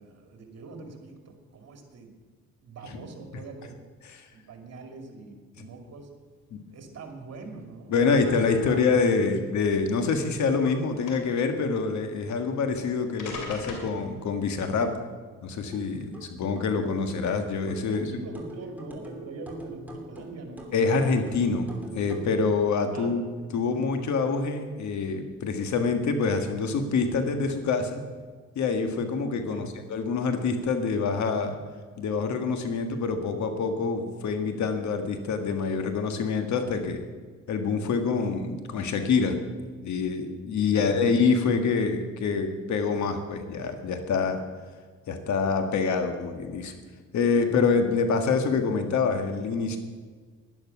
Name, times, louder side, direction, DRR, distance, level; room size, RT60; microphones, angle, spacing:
voice 1, 0.0-2.1 2.6-3.8 4.5-6.1 6.7-9.3 17.9-20.7 22.9-23.2 29.5-29.7 40.7-41.0, right 3 dB, 55° right, 4 dB, 2.6 m, -43 dB
sound 1, 7.0-7.1 7.4-7.5 8.1-9.0 9.9-10.7 11.0-11.4 12.6-12.7 13.2-14.0, left 4 dB, 90° left, 2.6 m, -38 dB
voice 2, 7.9-15.0 15.4-18.1 20.7-21.6 21.9-23.2 23.5-28.0 28.5-31.5 32.0-37.0 37.5-39.4 39.8-44.4 45.1-46.7 47.1-49.8, left 4 dB, 70° left, 7 dB, 1.7 m, -26 dB
sound 2, 15.7-22.4, right 2 dB, 5° right, 3.0 m, -43 dB
11.0 x 11.0 x 6.0 m, 1.5 s
cardioid pair, 90°, 30 cm